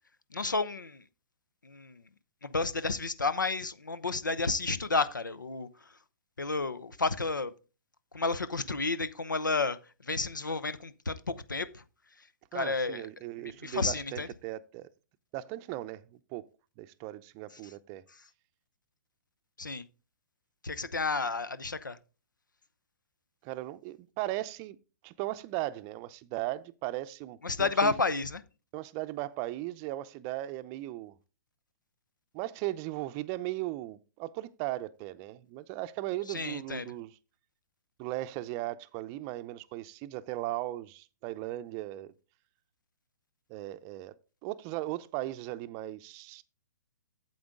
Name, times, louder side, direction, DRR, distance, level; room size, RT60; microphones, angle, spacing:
voice 1, 0.3-1.0 1.6-2.0 2.4-5.7 6.4-7.5 8.1-9.8 10.0-11.8 12.5-13.1 13.4-14.3 19.6-19.8 20.6-22.0 27.4-28.4 36.3-36.9, left 3 dB, 90° left, 0.7 m, -31 dB
voice 2, 12.5-14.9 15.3-16.5 16.8-18.0 23.4-24.8 25.0-27.9 28.7-31.2 32.3-37.2 38.0-42.1 43.5-44.1 44.4-46.4, right 16 dB, 30° right, 0.5 m, -37 dB
8.6 x 7.9 x 3.7 m
figure-of-eight pair, 125°, 10 cm